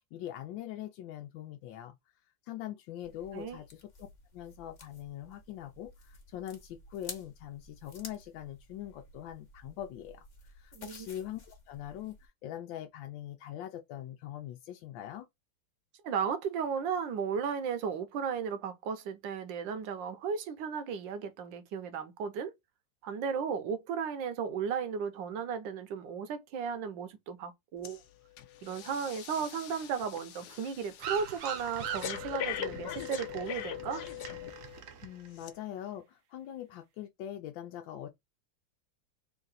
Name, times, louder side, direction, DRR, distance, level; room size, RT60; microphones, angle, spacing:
voice 1, 0.1-2.0 2.4-4.1 4.3-15.3 35.0-38.1, left 11 dB, 85° left, 1.3 m, -43 dB
roll of money exchanging hands, 3.0-12.3, left 3 dB, 30° left, 0.9 m, -52 dB
voice 2, 10.7-11.1 16.0-22.5 23.0-28.0 28.6-34.0, right 6 dB, 80° right, 1.4 m, -35 dB
Breathing, 27.8-28.0 28.4-34.8 35.4-35.5, left 11 dB, 70° left, 1.1 m, -41 dB
sound 1, 31.0-35.4, right 8 dB, 60° right, 0.9 m, -42 dB
3.8 x 2.6 x 3.9 m
omnidirectional pair, 2.0 m